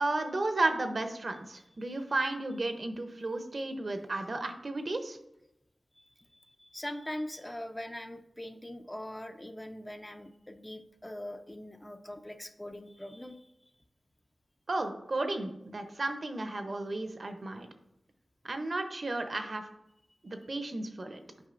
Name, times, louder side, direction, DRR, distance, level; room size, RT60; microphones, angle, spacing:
voice 1, 0.0-5.2 14.7-17.7 18.4-19.7 20.2-21.2, right 2 dB, 55° right, 7 dB, 0.7 m, -33 dB
voice 2, 6.0-13.5, left 1 dB, 15° left, 7 dB, 0.5 m, -42 dB
8.3 x 5.0 x 2.5 m, 0.85 s
wide cardioid pair, 60°, 0 cm